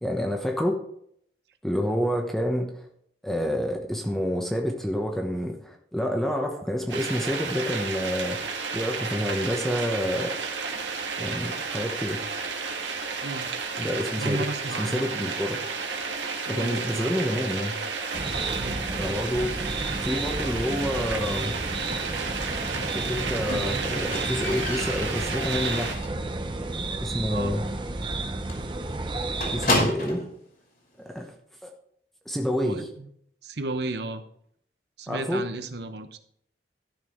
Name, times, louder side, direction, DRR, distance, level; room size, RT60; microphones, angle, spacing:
voice 1, 0.0-0.8 1.6-2.8 3.2-8.4 8.7-10.3 11.2-12.2 13.8-15.6 16.5-17.7 19.0-19.5 20.0-21.5 22.9-26.0 27.0-27.6 29.5-30.2 31.0-31.3 31.6-31.7 32.3-32.9 35.1-35.4, equal, ahead, 2 dB, 1.0 m, -28 dB
sound 1, 6.9-25.9, right 4 dB, 85° right, 1.8 m, -32 dB
voice 2, 14.2-15.3 16.5-17.2 18.6-18.8 27.3-27.6 32.6-33.1 33.4-34.2 35.0-36.2, right 2 dB, 65° right, 9 dB, 0.9 m, -34 dB
sound 2, 18.1-29.9, right 2 dB, 25° right, 0.8 m, -32 dB
Squeak, 23.5-26.3 26.6-27.0 27.3-27.4 27.7-27.8 28.1-28.2 28.5-30.3 31.2-31.3, left 2 dB, 50° left, 2.9 m, -31 dB
13.0 x 6.1 x 4.5 m, 0.68 s
head